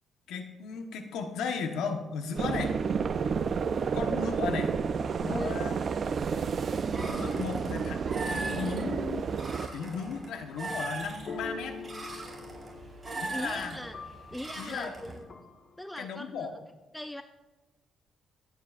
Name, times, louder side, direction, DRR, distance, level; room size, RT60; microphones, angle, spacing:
voice 1, 0.3-2.8 3.9-4.8 5.2-5.8 7.0-9.3 9.7-11.8 13.2-13.8 14.5-14.9 16.0-16.5, left 5 dB, 85° left, 5 dB, 1.3 m, -35 dB
sound 1, 2.4-9.7, right 6 dB, 50° right, 0.6 m, -30 dB
voice 2, 5.2-5.6 13.3-13.9 14.3-15.3 15.8-16.6 16.9-17.2, left 1 dB, 5° left, 8 dB, 0.5 m, -39 dB
sound 2, 6.9-15.2, right 2 dB, 25° right, 4.6 m, -40 dB
sound 3, 9.1-9.4 11.3-16.1, left 3 dB, 50° left, 1.8 m, -46 dB
25.0 x 9.5 x 2.6 m, 1.2 s
cardioid pair, 90°, 0 cm